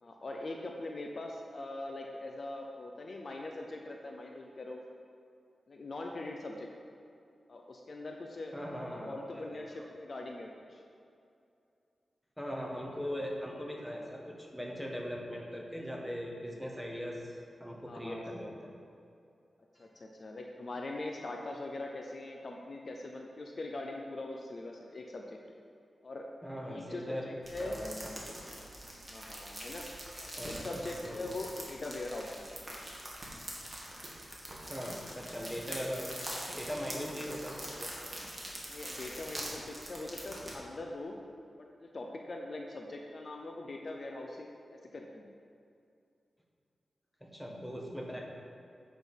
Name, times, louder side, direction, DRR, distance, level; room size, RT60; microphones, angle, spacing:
voice 1, 0.0-4.8 5.7-6.7 7.5-8.5 8.8-10.8 13.0-13.1 17.8-18.2 19.8-25.4 26.0-26.3 26.7-27.7 29.1-29.9 30.2-32.5 38.7-41.2 41.6-45.3, left 2 dB, 45° left, 1 dB, 0.7 m, -42 dB
voice 2, 8.5-9.8 12.4-18.7 19.8-19.9 26.4-27.3 27.6-28.3 30.4-31.2 34.7-36.1 36.5-37.9 47.2-48.2, equal, ahead, -1 dB, 1.2 m, -40 dB
sound 1, 27.4-40.5, right 1 dB, 15° right, 1.7 m, -44 dB
8.4 x 6.1 x 5.3 m, 2.5 s
wide cardioid pair, 135°, 0 cm